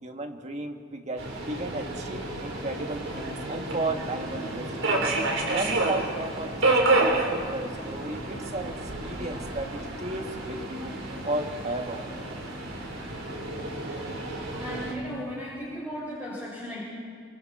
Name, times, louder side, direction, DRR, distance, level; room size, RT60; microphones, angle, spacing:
voice 1, 0.0-5.1 5.5-12.0, right 2 dB, 35° right, 4 dB, 1.8 m, -34 dB
Subway metro underground, 1.2-14.9, right 2 dB, 80° right, 4.3 m, -30 dB
voice 2, 14.6-16.8, equal, 10° right, -8 dB, 6.1 m, -36 dB
28.0 x 27.0 x 4.5 m, 2.1 s
head